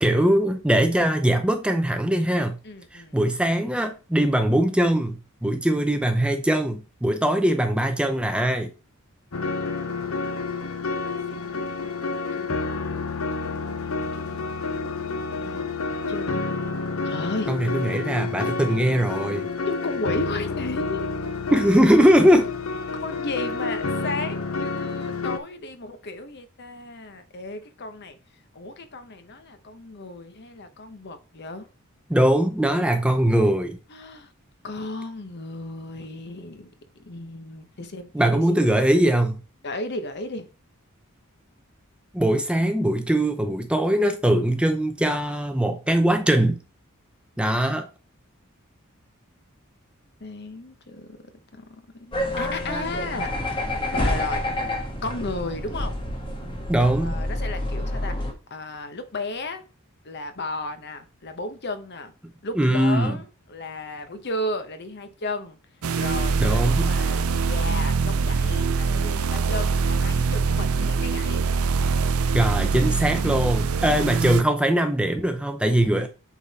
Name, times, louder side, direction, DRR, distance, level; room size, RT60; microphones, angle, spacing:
voice 1, 0.0-2.6 2.9-8.7 17.5-19.5 21.5-22.5 32.1-33.8 38.1-39.4 42.1-46.6 47.4-47.9 56.7-57.2 62.6-63.2 66.4-66.9 72.3-76.1, right 1 dB, 5° right, 0.6 m, -21 dB
voice 2, 2.6-3.2 5.4-5.7 11.3-12.7 13.4-14.5 14.9-15.6 16.1-16.4 17.0-17.5 19.7-21.0 23.0-28.2 28.5-31.7 33.9-34.3 34.6-36.7 37.0-38.4 38.8-38.9 39.6-40.5 50.2-51.2 51.5-51.6 51.9-53.3 53.9-54.4 55.0-56.0 56.8-59.6 60.0-62.1 62.4-65.6 65.9-71.4, left 2 dB, 50° left, 1.0 m, -34 dB
sound 1, 9.3-25.4, left 3 dB, 75° left, 0.8 m, -29 dB
sound 2, 52.1-58.3, left 1 dB, 25° left, 1.4 m, -28 dB
sound 3, 65.8-74.4, right 5 dB, 80° right, 0.5 m, -23 dB
8.3 x 4.0 x 4.1 m
head